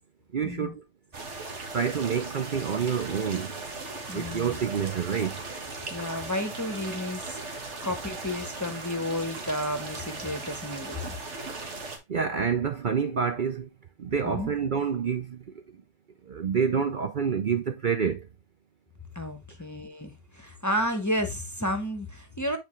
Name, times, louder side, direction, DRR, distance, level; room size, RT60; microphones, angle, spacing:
voice 1, 0.3-0.8 1.7-3.5 4.1-5.4 12.1-13.7 14.0-15.6 16.3-18.3, right 6 dB, 50° right, 0.7 m, -28 dB
sound 1, 1.1-12.0, right 3 dB, 75° right, 1.7 m, -38 dB
voice 2, 4.1-4.6 5.9-7.4 7.8-11.2 14.2-14.5 19.1-22.6, left 1 dB, 15° left, 0.9 m, -32 dB
7.9 x 4.7 x 3.1 m
omnidirectional pair, 1.2 m